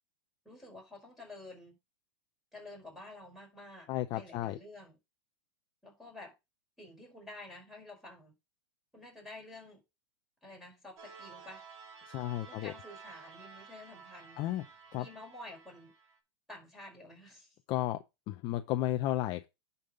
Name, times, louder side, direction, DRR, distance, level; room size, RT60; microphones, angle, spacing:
voice 1, 0.4-1.8 2.5-5.0 5.8-6.3 6.8-8.3 8.9-9.8 10.4-11.6 12.4-14.4 14.9-15.9 16.5-17.5, left 2 dB, ahead, 5.1 m, -50 dB
voice 2, 3.9-4.6 12.1-12.7 14.4-14.6 14.9-15.1 17.7-19.5, left 14 dB, 30° left, 0.6 m, -33 dB
sound 1, 11.0-16.2, right 5 dB, 90° right, 3.3 m, -53 dB
10.5 x 5.6 x 3.8 m
supercardioid pair, 145°, 15 cm